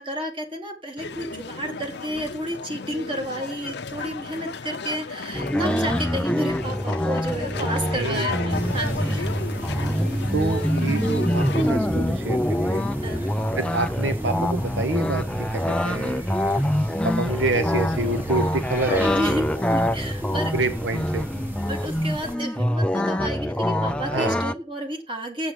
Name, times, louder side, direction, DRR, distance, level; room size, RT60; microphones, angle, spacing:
voice 1, 0.0-9.3 13.0-13.3 18.9-20.5 21.7-25.5, right 1 dB, 25° right, 3 dB, 2.0 m, -31 dB
sound 1, 1.0-11.7, left 4 dB, 60° left, 0.6 m, -35 dB
sound 2, 5.3-24.5, equal, 5° left, 0.4 m, -25 dB
voice 2, 7.6-8.9 10.3-12.9 13.5-16.3 17.0-19.3 20.4-21.3 24.1-24.4, right 2 dB, 70° right, 9 dB, 0.9 m, -28 dB
sound 3, 8.5-22.3, right 1 dB, 10° right, 1.0 m, -32 dB
7.8 x 7.4 x 6.4 m, 0.34 s
head